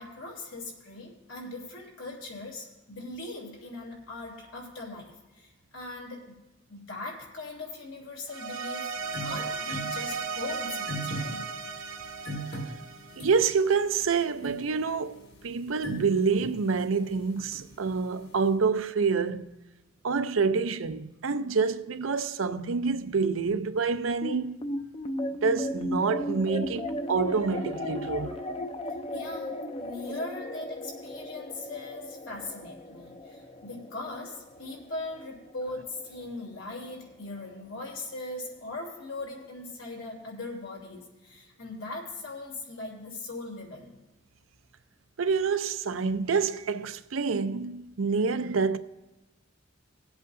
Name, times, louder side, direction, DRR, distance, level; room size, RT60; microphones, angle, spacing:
voice 1, 0.0-6.3 6.7-8.9 9.2-11.4 29.1-29.5 29.8-44.0, left 2 dB, 85° left, 3.2 m, -40 dB
sound 1, 8.3-13.6, right 5 dB, 70° right, 1.0 m, -36 dB
sound 2, 9.0-18.6, right 1 dB, 55° left, 1.8 m, -42 dB
voice 2, 13.2-19.5 20.0-24.5 25.4-28.4 45.2-48.8, right 5 dB, 85° right, 0.6 m, -27 dB
sound 3, 24.2-36.8, left 1 dB, 30° left, 0.5 m, -36 dB
20.5 x 8.1 x 2.6 m
head